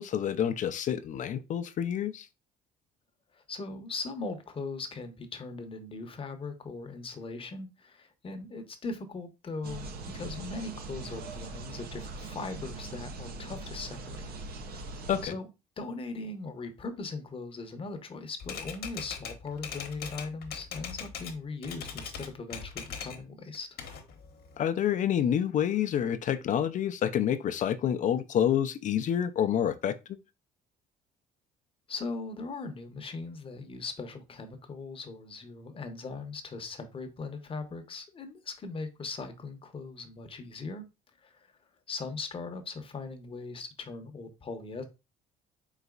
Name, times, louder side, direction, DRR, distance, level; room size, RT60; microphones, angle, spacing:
voice 1, 0.0-2.3 15.1-15.3 24.6-29.9, left 9 dB, 50° left, 0.4 m, -28 dB
voice 2, 3.3-14.3 14.7-15.5 15.8-23.7 31.9-40.8 41.2-41.5 41.9-44.8, left 3 dB, 30° left, 0.8 m, -39 dB
sound 1, 9.6-15.3, right 3 dB, 65° right, 0.7 m, -41 dB
Typewriter, 18.4-21.4 21.6-23.2 23.5-24.6, left 7 dB, 65° left, 1.0 m, -41 dB
4.2 x 3.9 x 2.3 m
cardioid pair, 110°, 17 cm